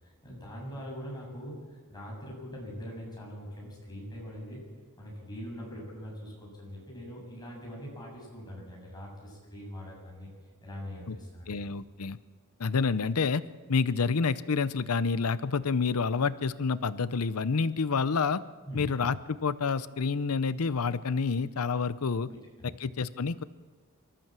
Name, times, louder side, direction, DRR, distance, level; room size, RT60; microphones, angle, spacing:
voice 1, 0.0-1.6 1.9-4.6 5.0-10.3 10.6-11.6 18.7-18.9 22.3-22.7, equal, 20° left, -2 dB, 7.4 m, -42 dB
voice 2, 11.5-12.2 12.6-13.4 13.7-18.4 18.7-22.3 22.8-23.4, left 5 dB, 75° left, 15 dB, 0.7 m, -28 dB
24.5 x 14.0 x 7.5 m, 1.4 s
head